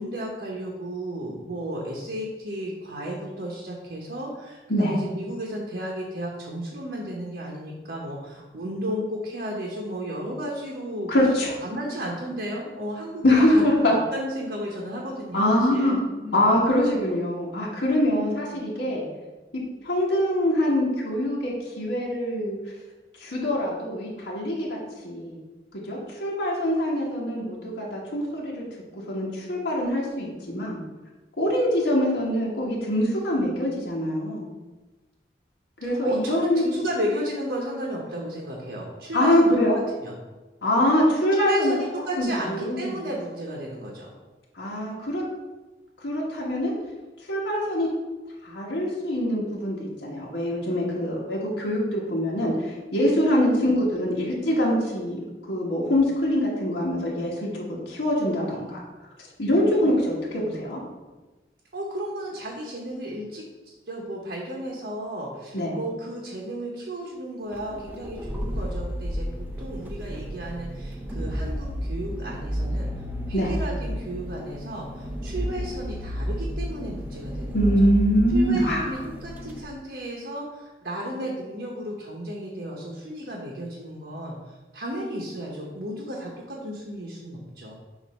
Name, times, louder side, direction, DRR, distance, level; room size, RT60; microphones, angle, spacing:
voice 1, 0.0-11.1 11.6-16.6 18.5-18.6 35.8-39.5 40.0-40.2 41.3-44.1 53.5-53.7 59.6-60.0 61.7-72.9 73.3-77.7 78.3-87.7, equal, 70° right, -3 dB, 1.0 m, -33 dB
voice 2, 11.1-11.6 13.2-13.9 15.3-16.0 16.3-19.0 19.5-22.6 23.2-24.8 25.0-25.4 25.9-28.6 29.1-30.8 31.4-34.5 35.8-36.6 39.1-39.8 40.6-41.7 42.2-43.0 44.6-45.2 46.0-46.7 47.3-47.9 48.4-58.8 59.4-60.8 65.5-65.8 73.3-73.5 77.5-78.9, left 1 dB, 85° left, -5 dB, 1.4 m, -24 dB
sound 1, 67.5-79.6, equal, 10° right, 0.5 m, -32 dB
7.2 x 2.7 x 5.3 m, 1.2 s
head